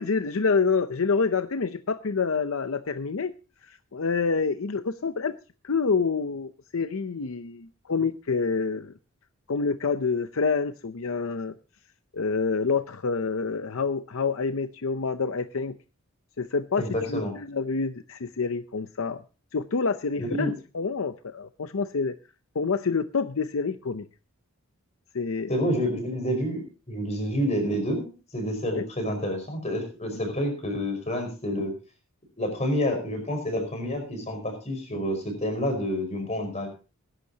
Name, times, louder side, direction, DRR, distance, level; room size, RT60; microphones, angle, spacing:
voice 1, 0.0-3.3 3.6-5.4 5.6-8.9 9.5-11.5 12.1-15.8 16.4-19.2 19.5-22.2 22.5-24.1 25.1-25.5 28.7-28.9 30.1-30.2, left 4 dB, 70° left, 10 dB, 0.6 m, -27 dB
voice 2, 16.8-17.3 20.2-20.5 25.5-31.7 32.4-36.7, equal, 30° left, 5 dB, 5.1 m, -28 dB
20.5 x 11.0 x 2.8 m, 0.33 s
head